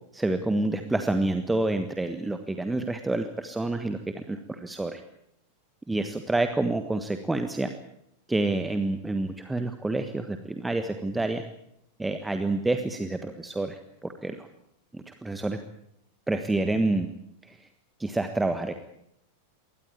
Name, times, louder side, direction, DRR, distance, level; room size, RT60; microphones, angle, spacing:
voice 1, 0.1-5.0 5.9-7.7 8.3-11.4 12.0-14.5 14.9-15.6 16.3-17.1 17.5-17.6 18.0-18.7, right 2 dB, 5° right, 8 dB, 1.4 m, -28 dB
22.0 x 18.0 x 8.7 m, 0.78 s
figure-of-eight pair, 90°, 0 cm